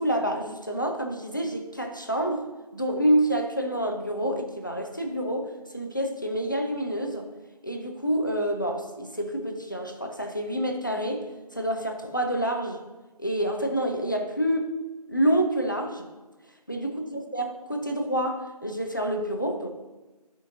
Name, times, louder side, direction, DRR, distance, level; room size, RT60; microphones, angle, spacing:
voice 1, 0.0-2.5 2.7-7.3 7.6-11.3 11.5-12.8 13.2-14.8 15.1-16.1 16.7-19.7, right 1 dB, 30° left, 4 dB, 0.5 m, -27 dB
10.0 x 5.1 x 2.5 m, 1.2 s
figure-of-eight pair, 170°, 21 cm